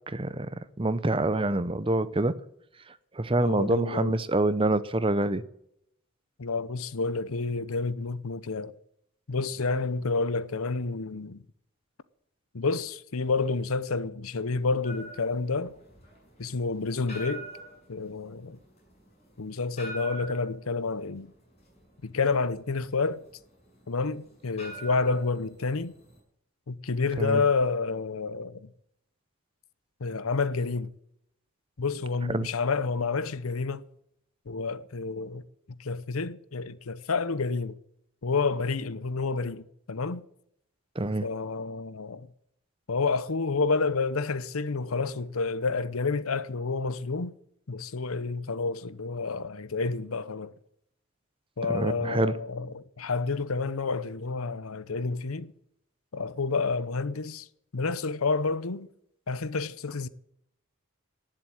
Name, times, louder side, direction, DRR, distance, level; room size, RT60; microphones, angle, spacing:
voice 1, 0.1-0.5 0.8-2.4 3.1-5.4 27.2-27.4 32.3-32.5 41.0-41.3 51.7-52.3, right 2 dB, 25° right, 0.7 m, -26 dB
voice 2, 3.4-4.2 6.4-8.7 9.3-11.4 12.5-15.7 16.4-17.5 17.9-18.6 19.4-21.3 22.0-23.2 23.9-25.9 26.7-28.7 30.0-30.9 31.8-33.9 34.5-35.4 35.7-37.8 38.2-40.2 41.2-42.3 42.9-47.3 47.7-50.5 51.6-55.5 56.1-57.5 57.7-58.9 59.3-60.1, left 4 dB, 85° left, 0.8 m, -29 dB
sound 1, 14.8-26.2, right 2 dB, 30° left, 7.4 m, -45 dB
18.5 x 7.6 x 9.0 m
head